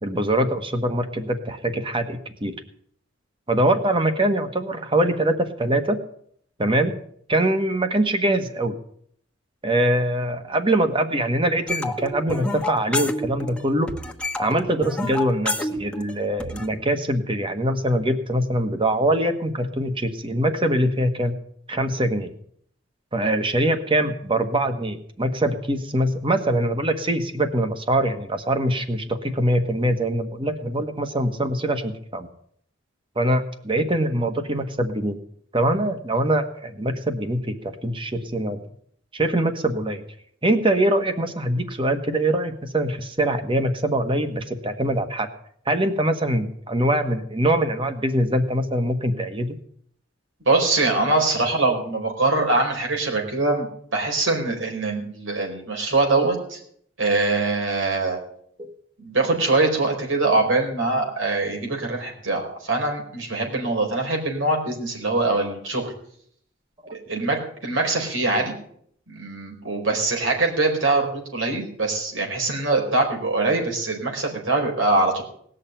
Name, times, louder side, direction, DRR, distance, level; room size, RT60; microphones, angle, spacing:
voice 1, 0.0-2.5 3.5-6.0 6.6-7.0 7.3-8.8 9.6-13.9 14.4-21.4 21.7-22.3 23.1-32.3 33.1-35.2 35.5-38.6 39.1-40.0 40.4-45.3 45.7-49.5 58.6-58.7 66.8-66.9, right 1 dB, 25° right, 8 dB, 1.4 m, -23 dB
sound 1, 11.7-13.6 13.9-16.7, left 2 dB, 5° left, 1.1 m, -28 dB
voice 2, 50.5-53.7 53.9-56.6 57.0-58.2 59.0-65.9 67.1-68.5 69.1-75.2, right 3 dB, 85° right, 1 dB, 4.5 m, -23 dB
18.5 x 6.6 x 9.1 m, 0.65 s
head